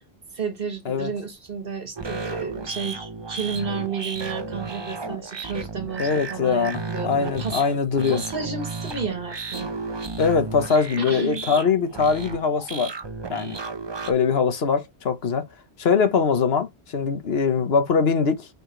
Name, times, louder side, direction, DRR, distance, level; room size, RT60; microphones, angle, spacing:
voice 1, 0.3-7.6 8.1-9.7 11.0-11.4, right 5 dB, 60° right, 1.6 m, -32 dB
sound 1, 2.0-14.1, right 3 dB, 30° right, 0.7 m, -34 dB
voice 2, 6.0-8.2 10.2-12.9 13.3-13.6 14.1-15.5 15.8-18.5, left 5 dB, 70° left, 1.2 m, -22 dB
5.3 x 4.8 x 3.8 m
omnidirectional pair, 1.1 m